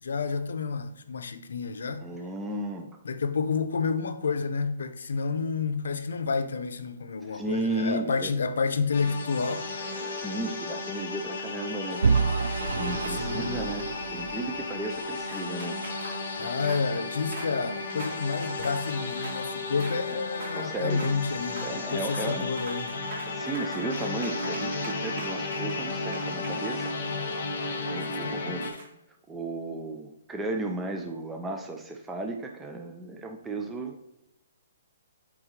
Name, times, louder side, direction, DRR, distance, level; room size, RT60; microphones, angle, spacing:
voice 1, 0.0-2.1 3.0-9.7 13.1-13.6 16.4-23.1 28.0-28.8, left 5 dB, 80° left, 0.7 m, -30 dB
voice 2, 2.0-3.0 7.3-8.3 10.0-15.9 16.3-16.5 20.5-21.1 21.6-22.5 23.3-27.1 27.9-28.7 29.3-34.0, right 2 dB, 10° right, 0.5 m, -35 dB
sound 1, 8.9-28.7, left 3 dB, 50° left, 1.4 m, -34 dB
sound 2, 9.8-10.6 12.7-13.6 15.3-19.5 19.8-20.0 20.3-20.6 20.9-21.2 21.4-21.7 22.0-22.3 22.6-27.3 28.7-28.9, right 3 dB, 45° right, 2.0 m, -44 dB
Vehicle / Engine, 12.0-15.0, right 5 dB, 90° right, 0.3 m, -28 dB
8.6 x 3.6 x 3.2 m
hypercardioid pair, 160°, 0 cm